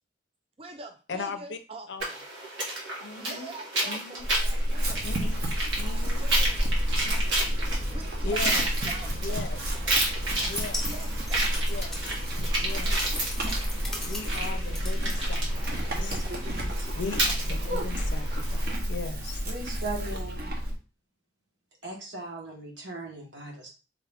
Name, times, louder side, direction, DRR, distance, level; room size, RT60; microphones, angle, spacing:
voice 1, 0.6-2.2 3.2-5.5 5.8-6.6 7.8-9.4 9.8-9.9 10.9-11.6, right 3 dB, 30° right, 0.4 m, -45 dB
voice 2, 1.1-1.6 1.9-2.0 3.0-3.5 3.8-4.3 5.0-5.4 5.7-6.2 7.0-7.2 8.2-8.7 9.2-9.6 10.4-10.9 11.7-12.0 12.6-13.0 14.0-16.2 16.9-18.6 18.9-19.4, left 4 dB, 70° left, 0.5 m, -38 dB
Rock walking river quiet with Limiter and Hard EQ, 2.0-18.7, right 1 dB, 90° right, 1.4 m, -32 dB
Chewing mastication / Livestock farm animals working animals, 4.2-20.8, equal, 55° right, 0.8 m, -30 dB
sound 1, 10.3-16.0, left 2 dB, ahead, 0.8 m, -40 dB
voice 3, 15.9-16.9 17.6-17.9 19.4-20.5 21.8-23.7, right 2 dB, 70° right, 1.2 m, -38 dB
3.6 x 2.4 x 3.4 m
head